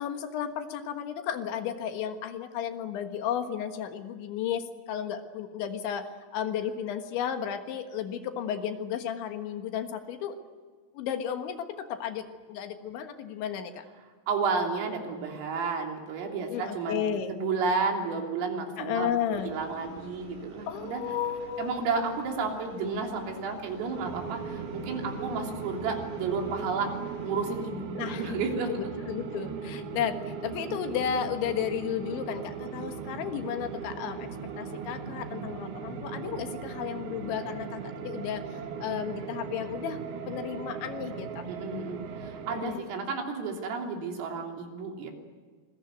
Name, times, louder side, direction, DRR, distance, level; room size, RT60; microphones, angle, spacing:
voice 1, 0.0-10.4 11.0-13.9 16.5-17.3 18.8-19.5 20.7-21.8 27.9-28.3 28.7-34.3 34.6-40.0 40.3-41.5 42.5-42.8, left 9 dB, 70° left, 7 dB, 3.6 m, -33 dB
voice 2, 14.3-17.0 17.3-21.0 21.6-26.9 27.2-28.7 41.5-45.1, right 4 dB, 85° right, 2 dB, 5.9 m, -32 dB
sound 1, 19.3-27.7, right 3 dB, 20° right, 6.3 m, -48 dB
sound 2, 24.0-42.8, right 6 dB, 60° right, 3.2 m, -38 dB
27.5 x 21.5 x 9.3 m, 1.5 s
omnidirectional pair, 5.8 m